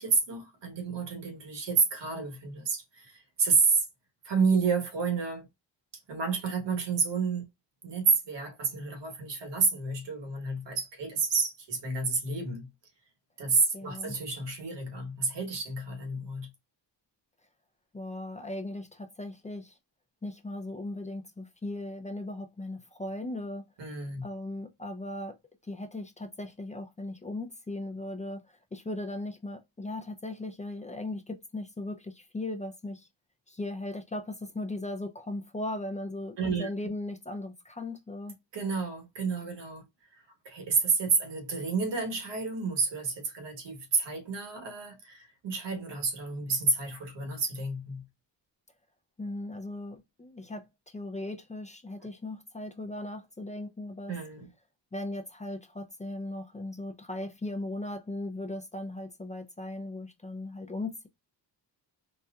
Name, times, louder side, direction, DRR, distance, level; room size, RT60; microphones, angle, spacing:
voice 1, 0.0-3.8 4.2-5.5 6.1-7.5 7.8-12.7 13.4-16.5 23.8-24.2 36.4-36.7 38.5-39.8 40.4-48.0 54.1-54.5, right 4 dB, 70° right, 1.3 m, -30 dB
voice 2, 13.7-14.2 17.9-19.8 20.2-23.6 24.2-25.4 25.7-33.1 33.5-38.4 49.2-50.7 50.9-54.1 54.9-61.1, left 2 dB, 15° left, 0.4 m, -38 dB
4.1 x 2.2 x 2.3 m
cardioid pair, 85°, 44 cm